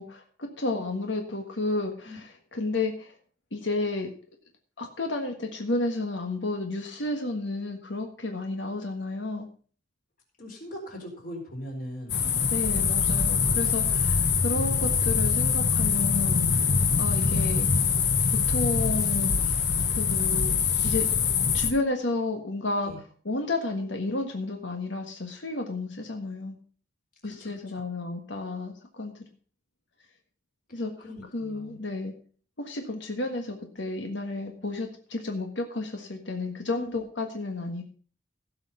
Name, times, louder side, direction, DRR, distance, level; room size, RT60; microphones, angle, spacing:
voice 1, 0.0-2.2 2.5-3.1 3.5-4.1 4.8-9.5 12.5-16.7 17.0-17.9 18.3-20.5 20.8-21.0 21.5-22.9 23.2-26.6 27.2-29.2 30.7-30.9 31.3-32.1 32.6-37.8, left 2 dB, 85° left, 4 dB, 1.6 m, -32 dB
voice 2, 10.4-12.6 22.8-23.0 27.2-27.8 30.7-31.8 36.8-37.0, equal, 50° left, 0 dB, 4.4 m, -41 dB
sound 1, 12.1-21.7, left 5 dB, 65° left, 1.4 m, -24 dB
16.0 x 5.8 x 5.6 m, 0.43 s
head